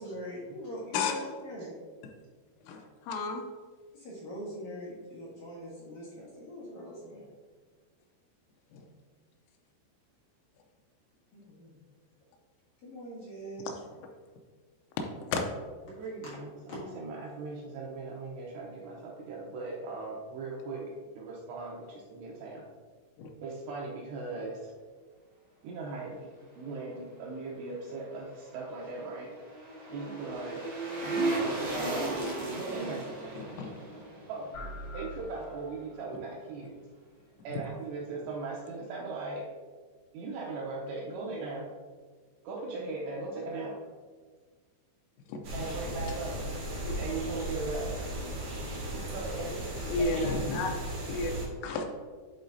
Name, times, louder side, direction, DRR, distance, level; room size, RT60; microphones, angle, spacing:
voice 1, 0.0-1.8 3.9-7.3 11.3-11.8 12.8-13.7 16.7-16.8, equal, 55° left, -8 dB, 2.3 m, -42 dB
voice 2, 2.6-3.4 8.7-8.9 13.7-13.8 15.2-15.4 23.2-23.3 31.3-31.6 33.4-33.7 38.2-38.3 45.3-45.4 49.9-50.8 51.1-51.3 51.6-51.9, left 3 dB, 85° left, 3 dB, 3.1 m, -32 dB
voice 3, 15.9-22.7 23.4-24.7 25.6-26.3 26.6-29.3 29.9-30.6 31.0-32.1 32.4-33.1 34.3-34.6 34.9-36.8 37.4-39.5 40.1-41.7 42.4-43.8 45.5-46.4 47.0-48.0 48.9-49.5 50.0-50.3, right 3 dB, 85° right, -2 dB, 2.5 m, -38 dB
sound 1, 28.4-35.6 35.9-36.0, right 2 dB, 50° right, 2.3 m, -36 dB
sound 2, 34.5-36.1, left 1 dB, 70° left, 1.6 m, -44 dB
sound 3, 45.4-51.5, right 1 dB, 70° right, 1.4 m, -36 dB
10.5 x 4.0 x 2.7 m, 1.5 s
omnidirectional pair, 5.6 m